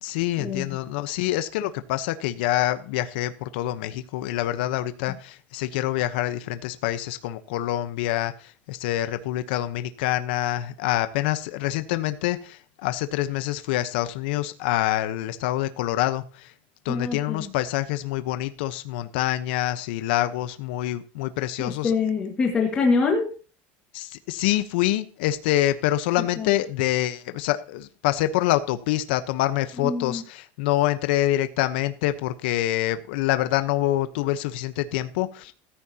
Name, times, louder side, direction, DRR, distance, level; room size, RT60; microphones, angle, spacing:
voice 1, 0.0-16.5 16.8-21.9 23.9-35.5, left 14 dB, 65° left, 10 dB, 1.0 m, -26 dB
voice 2, 16.9-17.5 21.6-23.3 26.4-26.5 29.8-30.2, left 4 dB, 15° left, -1 dB, 1.9 m, -25 dB
14.5 x 14.0 x 2.9 m, 0.37 s
supercardioid pair, 175°, 6 cm